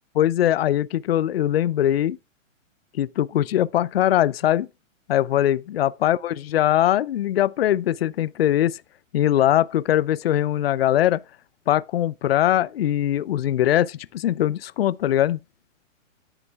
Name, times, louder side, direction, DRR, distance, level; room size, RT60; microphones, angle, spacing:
voice 1, 0.1-2.2 2.9-4.7 5.1-8.8 9.1-11.2 11.7-15.4, left 12 dB, 50° left, 0.5 m, -21 dB
10.0 x 9.7 x 3.5 m
hypercardioid pair, 170°, 39 cm